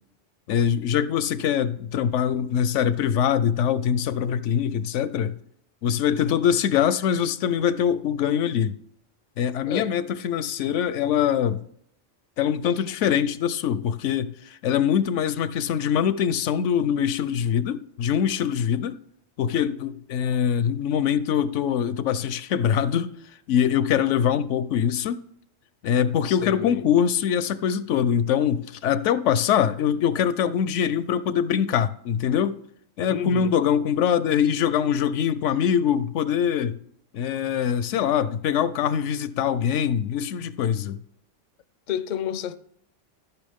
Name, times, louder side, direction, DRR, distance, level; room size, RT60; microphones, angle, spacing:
voice 1, 0.5-5.4 5.8-8.7 9.4-11.6 12.4-19.0 19.4-23.1 23.5-25.2 25.8-32.6 33.0-36.8 37.1-41.0, left 8 dB, 80° left, 0.9 m, -23 dB
voice 2, 26.2-26.9 33.1-33.5 41.9-42.6, left 8 dB, 50° left, 0.6 m, -31 dB
13.5 x 5.9 x 3.5 m
omnidirectional pair, 1.3 m